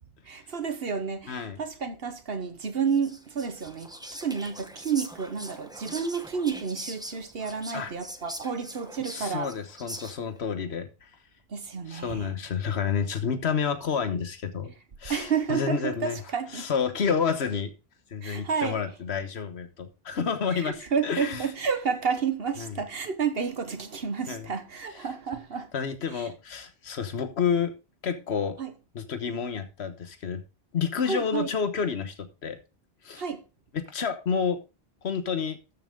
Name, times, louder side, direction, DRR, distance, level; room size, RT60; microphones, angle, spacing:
voice 1, 0.2-3.9 4.2-9.5 11.5-12.3 15.1-16.7 18.2-18.8 20.5-25.7 26.1-26.3 28.6-28.7 31.1-31.5 33.2-33.4, right 6 dB, 65° right, 1.4 m, -30 dB
voice 2, 1.3-1.6 7.7-7.9 9.1-11.1 11.9-14.7 15.0-16.2 16.5-17.7 18.1-21.5 22.6-22.8 24.3-24.5 24.9-25.1 25.7-27.7 28.0-28.6 28.9-30.4 30.7-32.6 33.0-33.2 33.7-34.6 35.0-35.6, left 6 dB, 80° left, 1.4 m, -29 dB
Whispering, 2.9-10.4, equal, 5° right, 1.1 m, -42 dB
13.0 x 7.3 x 3.7 m
omnidirectional pair, 1.1 m